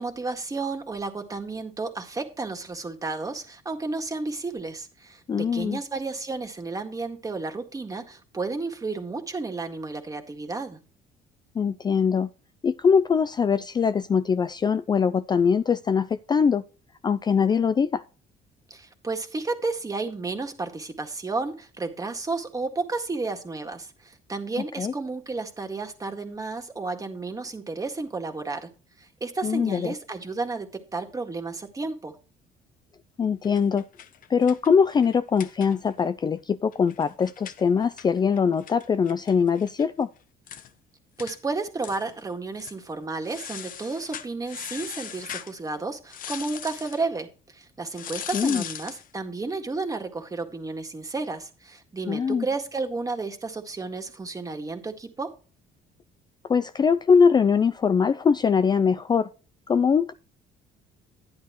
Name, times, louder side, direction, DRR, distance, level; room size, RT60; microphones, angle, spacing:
voice 1, 0.0-10.8 18.7-28.7 29.0-32.2 41.2-55.3, right 3 dB, 20° right, 1.9 m, -32 dB
voice 2, 5.3-5.8 11.6-12.3 12.6-16.6 17.0-18.0 24.8-24.9 29.4-29.9 33.2-33.8 34.3-40.1 48.3-48.6 52.1-52.5 56.5-59.3 59.7-60.1, left 6 dB, 25° left, 0.4 m, -22 dB
sound 1, 33.4-36.1 36.4-36.5 36.7-39.9 40.2-40.3 40.5-40.7 41.2-41.4 41.8-42.2 42.5-42.8 43.2-45.5 46.1-47.0 47.9-49.1, left 9 dB, 55° left, 0.9 m, -39 dB
11.5 x 10.5 x 3.1 m
cardioid pair, 110°, 17 cm